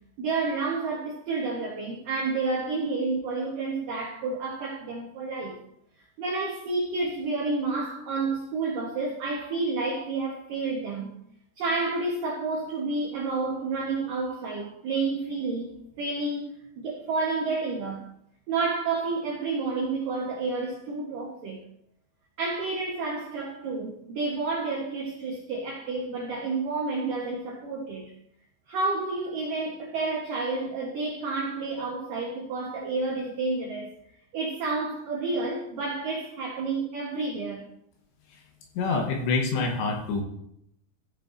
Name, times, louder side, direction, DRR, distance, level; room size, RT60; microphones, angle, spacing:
voice 1, 0.2-5.6 6.2-11.1 11.6-15.7 16.0-18.1 18.5-21.6 22.4-28.1 28.7-33.9 34.3-37.6, right 3 dB, 80° right, 1.9 m, -30 dB
voice 2, 38.8-40.2, left 3 dB, 70° left, 3.0 m, -26 dB
15.0 x 7.6 x 2.6 m
omnidirectional pair, 5.8 m